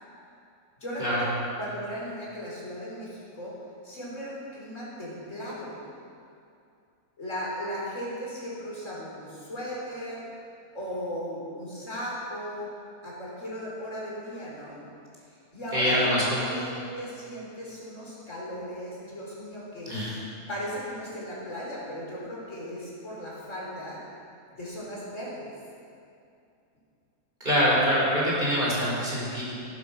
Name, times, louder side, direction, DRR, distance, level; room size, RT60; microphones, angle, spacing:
voice 1, 0.8-1.3 1.6-3.5 3.8-5.8 7.2-10.2 10.7-12.7 13.0-14.8 15.5-20.0 20.5-24.0 24.5-25.5, equal, 60° left, -6 dB, 4.7 m, -36 dB
voice 2, 15.7-16.5 19.9-20.1 27.4-29.4, equal, 30° right, -6 dB, 5.1 m, -24 dB
17.5 x 12.0 x 6.0 m, 2.6 s
omnidirectional pair, 1.5 m